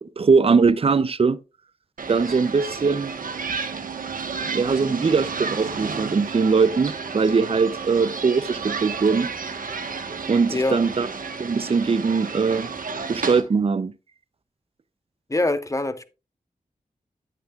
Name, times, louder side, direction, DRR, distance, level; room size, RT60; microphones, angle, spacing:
voice 1, 0.0-1.4 2.1-3.2 4.5-9.3 10.3-11.1 11.4-12.7 13.1-13.9, right 5 dB, 40° right, 0.5 m, -21 dB
sound 1, 2.0-13.4, right 5 dB, 70° right, 1.3 m, -32 dB
voice 2, 10.5-10.8 15.3-16.0, left 2 dB, 20° left, 0.9 m, -24 dB
9.6 x 9.1 x 2.4 m
cardioid pair, 45°, 15 cm